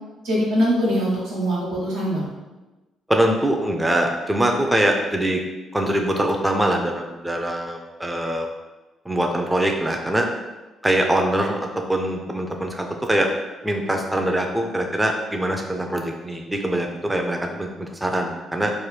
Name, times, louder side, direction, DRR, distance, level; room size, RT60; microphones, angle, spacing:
voice 1, 0.2-2.3, equal, 90° right, -7 dB, 1.1 m, -22 dB
voice 2, 3.1-5.4 5.7-8.5 9.1-10.3 10.8-13.3 13.6-18.7, right 1 dB, 10° right, 2 dB, 0.4 m, -23 dB
3.0 x 2.1 x 3.2 m, 1.1 s
supercardioid pair, 70°, 0 cm